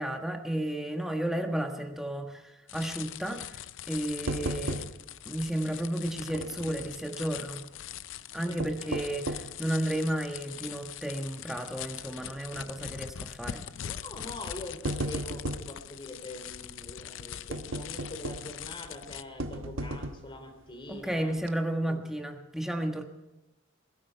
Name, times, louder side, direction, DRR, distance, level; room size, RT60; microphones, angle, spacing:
voice 1, 0.0-3.5 3.9-4.8 5.2-7.6 8.3-13.6 20.9-23.0, right 1 dB, ahead, 4 dB, 1.4 m, -33 dB
sound 1, 2.7-19.2, left 11 dB, 70° left, 0.5 m, -42 dB
sound 2, 4.3-5.2 5.5-5.6 6.3-7.0 8.4-9.6 10.2-10.3 10.9-11.2 11.5-11.6 12.7-13.0 13.9-14.1 14.5-15.8 17.5-18.6 19.4-20.4 20.9-21.0 21.4-21.5, right 1 dB, 80° right, 1.2 m, -35 dB
voice 2, 8.5-8.9 13.8-21.3 21.9-22.0, left 1 dB, 25° left, 5 dB, 3.0 m, -44 dB
21.0 x 13.0 x 4.6 m, 1.0 s
head